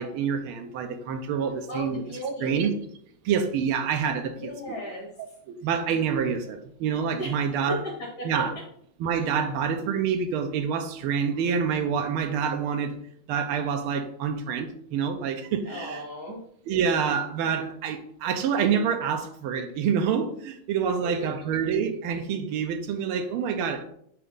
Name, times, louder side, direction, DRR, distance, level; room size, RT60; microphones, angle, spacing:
voice 1, 0.0-2.8 3.2-4.8 5.5-7.8 8.2-8.5 9.0-13.0 13.3-16.0 16.7-23.9, right 7 dB, 85° right, 1.6 m, -27 dB
voice 2, 1.7-2.6 4.4-5.1 7.2-7.4 7.7-8.5 15.7-16.4 20.9-21.0 21.4-21.5, left 1 dB, 50° left, 2.1 m, -36 dB
7.8 x 4.7 x 3.9 m
omnidirectional pair, 2.3 m